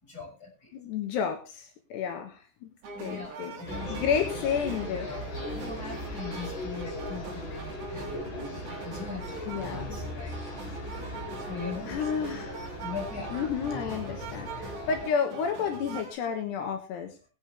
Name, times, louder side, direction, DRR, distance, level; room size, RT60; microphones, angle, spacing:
voice 1, 0.0-0.7 2.9-3.9 4.9-8.4 8.6-10.4 11.5-12.1 12.8-13.3, left 5 dB, 20° left, -2 dB, 6.8 m, -41 dB
voice 2, 0.7-2.7 3.0-5.1 9.5-10.0 11.9-12.6 13.3-17.2, left 7 dB, 80° left, 4 dB, 3.4 m, -31 dB
sound 1, 2.8-16.2, right 4 dB, 55° right, 3.0 m, -43 dB
sound 2, 3.7-15.0, left 1 dB, 45° left, 5.1 m, -38 dB
21.0 x 8.6 x 3.4 m, 0.33 s
omnidirectional pair, 4.8 m